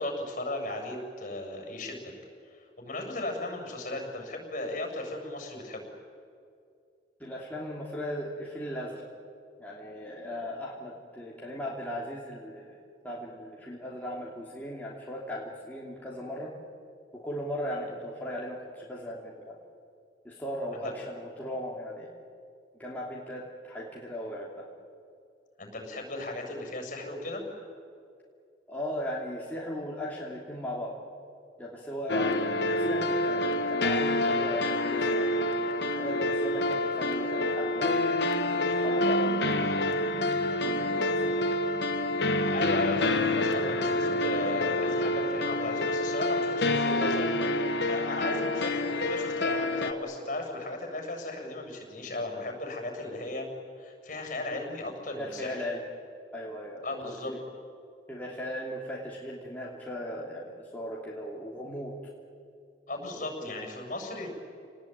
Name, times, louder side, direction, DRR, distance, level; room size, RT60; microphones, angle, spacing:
voice 1, 0.0-2.1 2.5-5.8 20.8-20.9 25.6-27.4 42.5-53.5 53.8-55.6 56.8-57.4 62.9-64.3, left 2 dB, 45° left, 2 dB, 7.5 m, -36 dB
voice 2, 7.2-9.1 9.6-12.8 13.0-16.5 17.2-19.6 20.2-22.1 22.8-24.5 28.7-30.9 31.6-35.3 35.8-38.2 38.7-39.8 40.6-41.4 55.2-55.8 56.3-57.1 58.1-61.9 63.1-63.5, equal, 10° left, -5 dB, 3.0 m, -37 dB
sound 1, 32.1-49.9, left 1 dB, 65° left, 1.5 m, -27 dB
30.0 x 19.5 x 9.4 m, 2.4 s
head